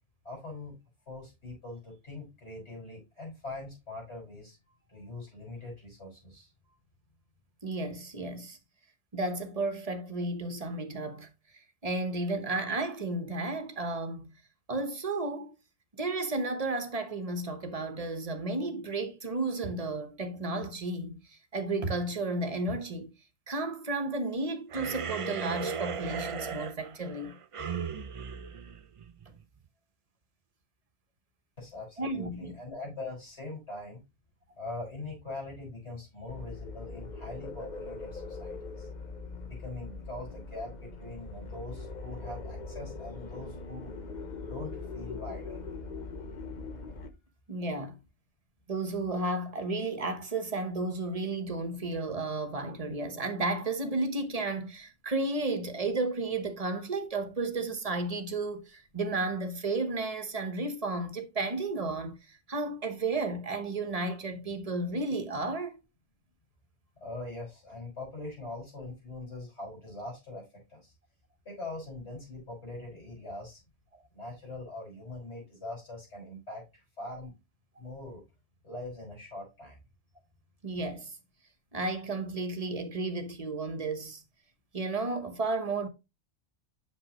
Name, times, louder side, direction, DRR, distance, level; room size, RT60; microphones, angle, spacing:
voice 1, 0.2-0.8 1.1-4.6 4.9-6.5 31.6-34.0 34.6-38.9 39.4-43.9 44.4-45.7 67.0-70.9 71.4-73.6 74.1-77.3 77.8-78.2 78.6-79.8, left 2 dB, 70° left, 6.2 m, -42 dB
voice 2, 7.6-8.6 9.1-11.3 11.8-14.4 14.7-15.5 16.0-23.1 23.5-27.4 32.0-32.6 47.5-47.9 48.7-65.8 73.9-74.0 80.6-81.1 81.7-84.2 84.7-85.9, right 2 dB, 35° right, 1.1 m, -33 dB
sound 1, 24.7-29.4, right 6 dB, 50° right, 0.4 m, -37 dB
sound 2, 36.3-47.1, left 3 dB, 45° left, 0.9 m, -41 dB
8.0 x 6.4 x 2.9 m
omnidirectional pair, 1.2 m